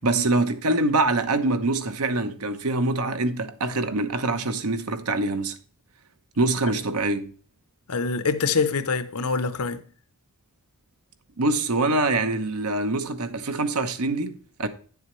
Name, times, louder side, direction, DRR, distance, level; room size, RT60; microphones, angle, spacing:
voice 1, 0.0-5.6 6.4-7.3 11.4-14.7, right 2 dB, 80° right, 1.0 m, -24 dB
voice 2, 7.9-9.8, left 4 dB, 80° left, 0.8 m, -25 dB
9.6 x 7.2 x 3.1 m
head